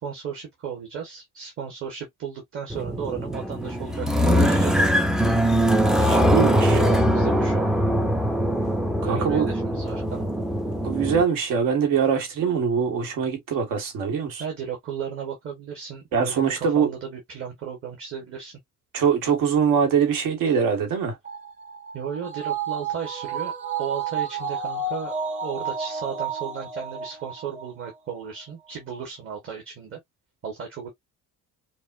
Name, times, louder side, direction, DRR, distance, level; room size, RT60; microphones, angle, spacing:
voice 1, 0.0-5.0 6.0-7.7 9.0-10.3 14.4-18.6 21.9-23.5 23.8-25.1 25.4-30.0 30.4-30.9, right 7 dB, 40° right, 1.2 m, -34 dB
sound 1, 2.7-11.2, equal, ahead, 0.3 m, -22 dB
voice 2, 6.3-6.8 9.0-9.5 10.8-14.4 16.1-16.9 18.9-21.2, right 7 dB, 75° right, 1.7 m, -23 dB
sound 2, 21.2-27.9 28.3-28.4, right 5 dB, 20° right, 0.8 m, -31 dB
5.2 x 2.3 x 2.5 m
cardioid pair, 160°, 34 cm